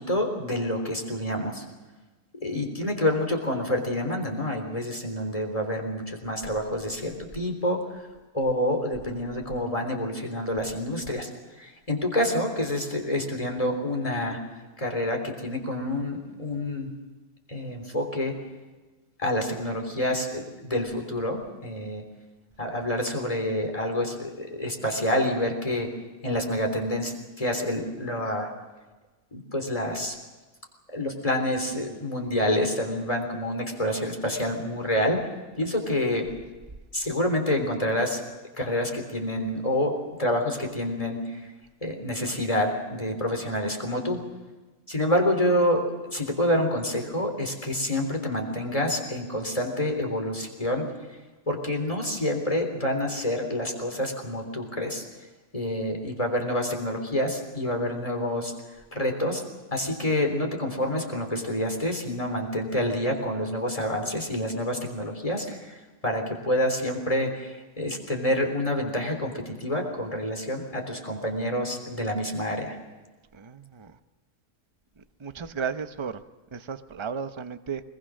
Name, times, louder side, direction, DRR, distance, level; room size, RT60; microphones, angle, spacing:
voice 1, 0.0-1.6 2.4-7.8 8.3-11.3 11.6-14.4 14.8-16.9 17.5-18.4 19.2-22.0 22.6-25.9 26.2-28.5 29.3-30.2 30.9-35.2 35.6-36.3 36.9-38.2 38.6-41.4 41.8-44.2 44.9-50.9 51.5-55.0 55.5-58.5 58.9-59.4 59.7-72.8, left 1 dB, 20° left, 3 dB, 3.6 m, -28 dB
voice 2, 73.3-74.0 75.0-76.2 76.5-77.8, right 6 dB, 30° right, 10 dB, 0.5 m, -34 dB
24.0 x 21.0 x 6.3 m, 1.2 s
omnidirectional pair, 1.7 m